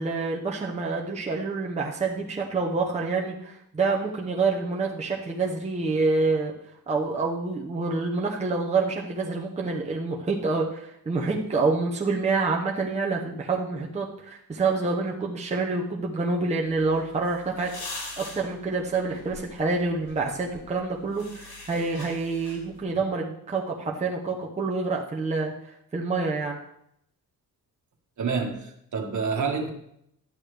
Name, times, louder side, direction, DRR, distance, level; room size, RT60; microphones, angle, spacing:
voice 1, 0.0-6.5 6.9-25.5 25.9-26.6, right 3 dB, 20° right, -1 dB, 0.8 m, -27 dB
sound 1, 16.7-22.8, left 2 dB, 80° left, 3.9 m, -43 dB
voice 2, 28.2-29.7, right 5 dB, 50° right, 3 dB, 1.5 m, -28 dB
12.0 x 9.5 x 3.3 m, 0.74 s
wide cardioid pair, 175°, 37 cm